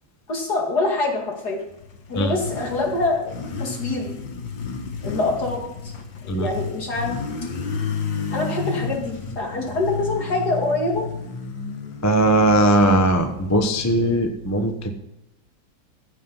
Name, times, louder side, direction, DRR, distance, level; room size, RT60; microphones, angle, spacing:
voice 1, 0.3-1.6 2.1-4.1 5.0-5.9 6.2-7.1 8.3-11.0, left 2 dB, 60° left, 1 dB, 2.9 m, -25 dB
Motorcycle, 1.5-14.2, left 4 dB, 80° left, 2.1 m, -32 dB
voice 2, 12.0-14.9, right 1 dB, 15° left, 6 dB, 0.8 m, -19 dB
15.5 x 7.6 x 5.6 m, 0.91 s
omnidirectional pair, 1.9 m